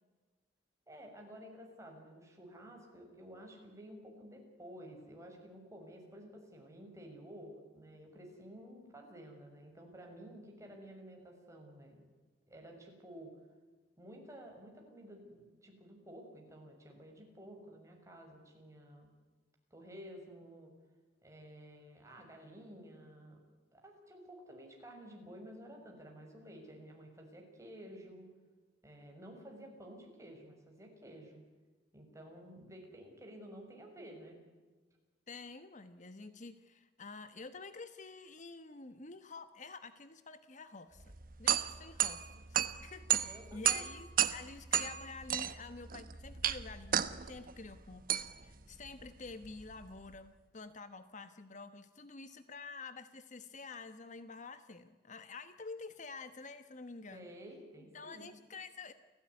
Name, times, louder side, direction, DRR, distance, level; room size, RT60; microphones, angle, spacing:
voice 1, 0.9-12.0 12.5-13.3 14.0-19.1 19.7-20.7 21.2-23.4 23.7-28.2 28.8-31.4 31.9-34.4 43.2-43.8 57.1-58.3, equal, 15° right, 1 dB, 6.4 m, -52 dB
voice 2, 35.3-41.1 41.4-57.3 57.9-58.9, left 4 dB, 40° left, 11 dB, 1.1 m, -49 dB
sound 1, 41.0-50.1, right 9 dB, 50° right, 1.2 m, -34 dB
29.5 x 16.5 x 9.6 m, 1.3 s
head